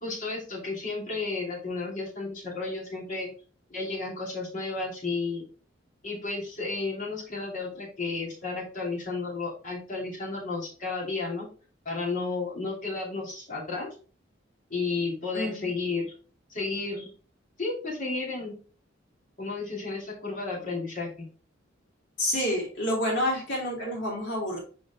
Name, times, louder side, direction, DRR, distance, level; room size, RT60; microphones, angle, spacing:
voice 1, 0.0-3.3 3.7-5.4 6.0-11.5 11.8-13.9 14.7-16.1 16.5-17.1 17.6-18.5 19.4-21.2, left 3 dB, 45° left, -3 dB, 3.0 m, -32 dB
voice 2, 15.3-15.7 22.2-24.6, left 1 dB, 65° left, -3 dB, 3.0 m, -28 dB
6.0 x 5.0 x 3.6 m, 0.38 s
head